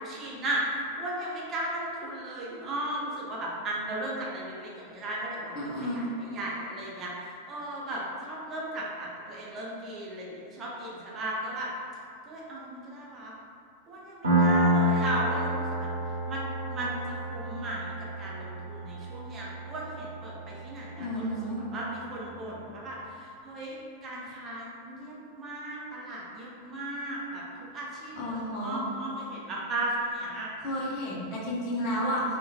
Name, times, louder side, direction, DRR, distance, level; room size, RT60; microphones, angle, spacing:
voice 1, 0.0-11.7 12.3-13.3 13.9-27.4 27.7-30.5, right 1 dB, 25° right, -4 dB, 0.5 m, -36 dB
voice 2, 5.5-6.1 21.0-21.6 28.1-28.9 30.6-32.2, equal, 40° left, -5 dB, 0.6 m, -32 dB
Piano, 14.2-21.6, right 1 dB, 75° right, 0.7 m, -29 dB
3.0 x 2.1 x 2.2 m, 2.3 s
figure-of-eight pair, 90°, 0 cm